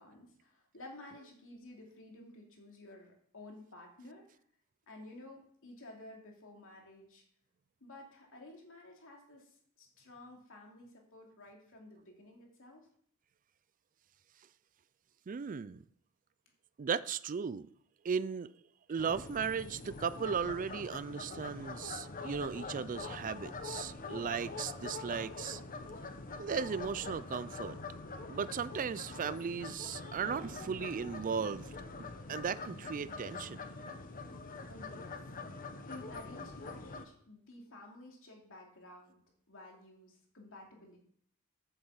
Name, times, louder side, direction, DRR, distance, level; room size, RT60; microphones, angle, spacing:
voice 1, 0.0-4.3 4.9-7.2 7.8-12.9 34.7-35.2 35.9-39.2 39.5-41.0, left 1 dB, 65° left, 2.8 m, -53 dB
voice 2, 15.3-15.8 16.8-17.7 18.0-18.5 18.9-25.6 26.4-27.8 28.3-33.6, right 6 dB, 35° right, 0.4 m, -36 dB
sound 1, 19.0-37.1, left 3 dB, 40° left, 1.0 m, -44 dB
8.1 x 7.8 x 7.3 m
head